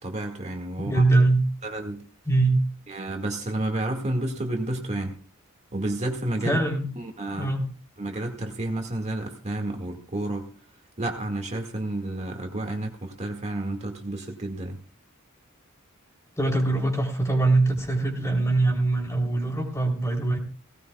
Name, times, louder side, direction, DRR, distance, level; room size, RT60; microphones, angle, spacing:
voice 1, 0.0-1.0 1.6-2.0 2.9-5.2 5.7-6.6 7.0-7.5 8.0-10.5 11.0-14.8, right 1 dB, 35° right, 3 dB, 1.9 m, -30 dB
voice 2, 0.8-1.4 2.3-2.6 6.4-6.9 7.4-7.7 16.4-20.4, right 2 dB, 15° left, 2 dB, 3.4 m, -22 dB
18.0 x 17.5 x 2.3 m, 0.38 s
head